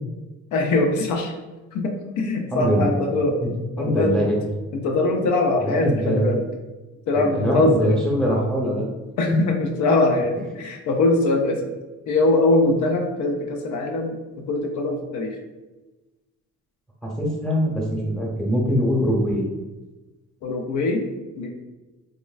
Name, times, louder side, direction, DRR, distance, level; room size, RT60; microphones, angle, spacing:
voice 1, 0.5-1.3 1.7-3.4 3.8-4.1 4.7-6.4 7.1-8.0 9.2-11.6 12.1-14.2 14.5-15.3 20.4-21.0 21.4-21.5, left 2 dB, 80° left, 2 dB, 0.5 m, -22 dB
voice 2, 2.5-3.5 3.8-4.4 5.6-6.3 7.1-8.9 9.3-9.4 17.0-19.5, equal, ahead, -3 dB, 0.8 m, -23 dB
3.6 x 2.0 x 2.3 m, 1.1 s
cardioid pair, 90°, 30 cm